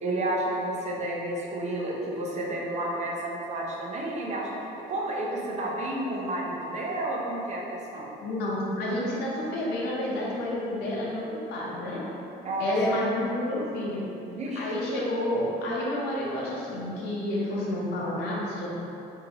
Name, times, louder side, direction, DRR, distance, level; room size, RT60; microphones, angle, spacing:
voice 1, 0.0-7.6 7.9-8.1 12.4-12.8 14.3-14.7, right 1 dB, 40° right, -3 dB, 0.7 m, -31 dB
voice 2, 8.2-12.0 12.6-14.1 14.6-18.7, left 1 dB, 80° left, -5 dB, 0.7 m, -29 dB
4.2 x 2.7 x 2.8 m, 3.0 s
cardioid pair, 110°, 17 cm